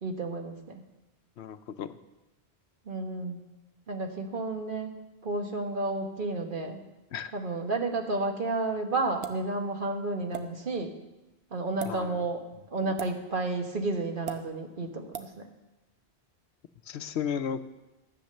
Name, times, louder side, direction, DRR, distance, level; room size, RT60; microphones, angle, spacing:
voice 1, 0.0-0.8 2.8-3.4 3.9-6.8 7.3-10.9 11.5-12.4 12.7-15.5, right 2 dB, 50° right, 4 dB, 1.4 m, -31 dB
voice 2, 1.4-2.0 7.1-7.3 11.8-12.2 16.9-17.6, left 8 dB, 80° left, 11 dB, 0.9 m, -34 dB
sound 1, 9.2-9.4 10.3-10.5 11.7-11.9 13.0-13.1 14.3-14.4 15.1-15.3, right 7 dB, 70° right, 1.1 m, -37 dB
13.5 x 8.5 x 6.6 m, 1.0 s
omnidirectional pair, 1.1 m